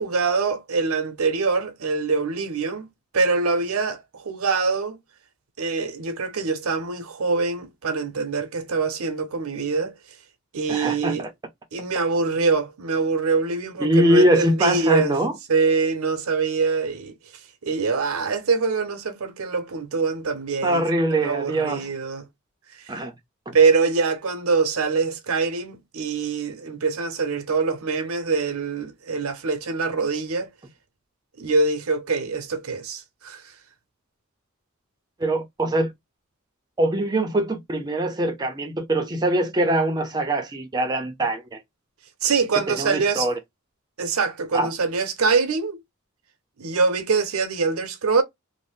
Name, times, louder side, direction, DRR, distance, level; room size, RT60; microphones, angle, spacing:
voice 1, 0.0-2.9 3.1-5.0 5.6-9.9 10.5-11.3 11.7-15.2 15.5-17.2 17.6-20.8 21.2-22.3 22.8-22.9 23.5-30.5 31.4-33.4 42.2-43.3 44.0-45.8 46.6-48.2, right 4 dB, 90° right, 0.6 m, -24 dB
voice 2, 10.7-11.3 13.8-15.3 20.6-21.9 22.9-23.1 23.5-23.6 35.2-35.9 36.8-41.6 42.5-43.4 44.5-44.7, right 1 dB, 20° right, 0.4 m, -22 dB
2.6 x 2.0 x 3.4 m
head